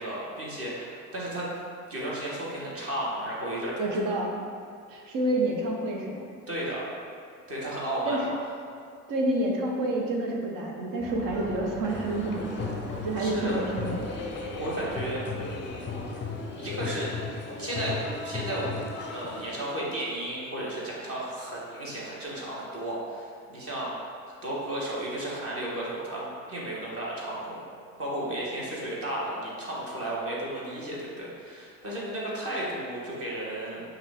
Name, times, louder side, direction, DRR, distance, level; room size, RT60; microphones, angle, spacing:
voice 1, 0.0-1.5 1.9-4.1 6.5-6.8 7.5-8.3 12.9-13.6 14.5-16.3 16.5-17.1 17.6-18.8 19.1-23.9 24.4-27.6 28.0-33.8, right 1 dB, 30° right, -5 dB, 1.4 m, -34 dB
voice 2, 3.8-4.3 4.9-6.2 8.0-8.2 9.1-14.1, right 1 dB, 50° right, 0 dB, 0.9 m, -29 dB
sound 1, 11.0-16.2, left 1 dB, 5° right, 1.2 m, -42 dB
sound 2, 11.9-19.6, left 4 dB, 25° left, 0.6 m, -36 dB
5.4 x 2.5 x 3.5 m, 2.2 s
hypercardioid pair, 65°, 43 cm